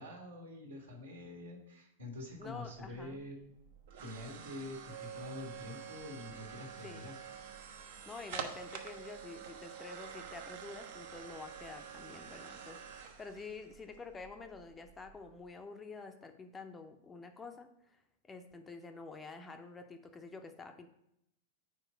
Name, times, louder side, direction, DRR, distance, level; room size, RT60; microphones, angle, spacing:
voice 1, 0.0-3.5 3.9-7.2, left 2 dB, 75° right, -3 dB, 1.7 m, -46 dB
voice 2, 2.4-3.2 6.8-7.1 8.0-20.9, left 4 dB, 15° left, 6 dB, 0.5 m, -48 dB
sound 1, 2.5-15.5, right 7 dB, 55° right, 0.7 m, -48 dB
4.8 x 4.5 x 6.1 m, 0.79 s
figure-of-eight pair, 95°, 0 cm